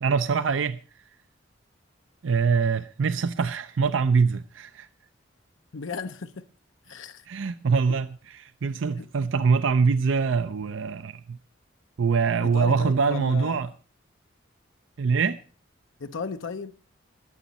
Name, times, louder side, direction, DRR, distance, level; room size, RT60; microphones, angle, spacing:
voice 1, 0.0-0.8 2.2-4.9 7.3-8.1 8.4-11.4 12.0-13.7 15.0-15.4, right 5 dB, 75° right, 0.5 m, -24 dB
voice 2, 5.7-6.5 6.9-7.2 7.9-8.0 8.7-9.3 12.4-13.6 16.0-16.7, left 4 dB, 75° left, 0.6 m, -35 dB
20.5 x 7.1 x 4.1 m
head